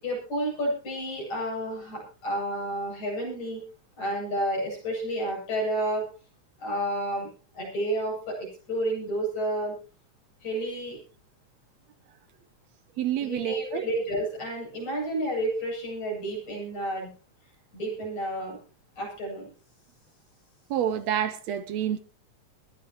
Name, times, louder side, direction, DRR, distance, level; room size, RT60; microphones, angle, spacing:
voice 1, 0.0-3.6 4.0-6.0 6.6-7.3 7.5-9.8 10.4-11.0 13.2-17.1 17.7-18.6 19.0-19.4, right 1 dB, 70° left, 9.5 m, -30 dB
voice 2, 13.0-13.9 20.7-22.0, right 10 dB, 70° right, 1.9 m, -28 dB
21.0 x 14.5 x 3.0 m
omnidirectional pair, 3.4 m